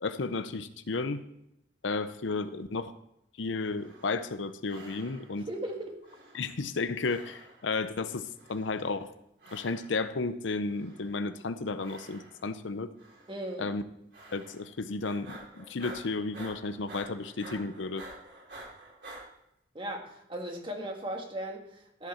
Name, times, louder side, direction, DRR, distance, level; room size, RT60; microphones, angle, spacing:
voice 1, 0.0-1.2 1.8-2.9 3.4-5.5 6.3-9.1 9.5-12.9 13.6-13.8 14.3-18.0, left 3 dB, 80° left, 11 dB, 0.7 m, -33 dB
sound 1, 3.7-4.4 4.7-5.5 6.0-6.8 7.0-7.8 8.4-9.0 9.4-10.1 10.6-11.3 11.8-12.6 13.0-13.5 14.1-14.7 15.0-19.2, right 2 dB, 60° right, 3.9 m, -49 dB
voice 2, 5.5-5.9 13.3-13.7 19.8-22.1, right 1 dB, 25° right, 2 dB, 1.7 m, -37 dB
13.0 x 7.6 x 4.4 m, 0.81 s
head